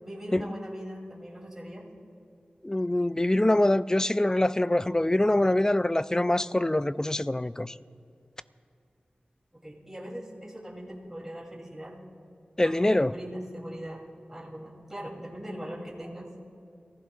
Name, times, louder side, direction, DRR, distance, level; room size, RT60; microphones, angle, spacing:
voice 1, 0.0-1.9 5.0-5.5 9.5-12.0 12.6-14.0 14.3-16.3, equal, 10° right, -4 dB, 2.9 m, -40 dB
voice 2, 2.6-7.8 12.6-13.1, left 1 dB, 20° left, 15 dB, 0.4 m, -24 dB
25.5 x 15.5 x 2.4 m, 2.4 s
wide cardioid pair, 65°, 3 cm